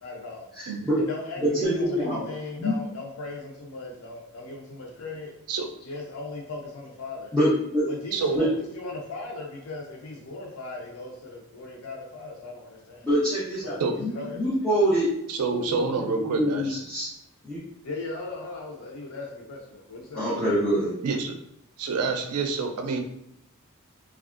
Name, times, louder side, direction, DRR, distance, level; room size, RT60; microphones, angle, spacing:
voice 1, 0.0-0.5 0.8-5.3 5.8-7.4 7.9-13.1 13.6-14.4 17.8-20.3, left 2 dB, 70° left, -1 dB, 0.5 m, -38 dB
voice 2, 0.5-1.0 1.4-2.2 2.6-2.8 7.3-7.8 8.3-8.5 13.0-15.1 15.5-15.8 16.1-17.1 17.4-17.6 20.1-21.0, equal, 5° left, -13 dB, 0.8 m, -25 dB
voice 3, 8.1-8.4 13.8-14.0 15.3-16.7 21.0-21.4 21.8-23.0, right 4 dB, 90° right, 4 dB, 0.4 m, -27 dB
3.4 x 2.3 x 2.4 m, 0.78 s
head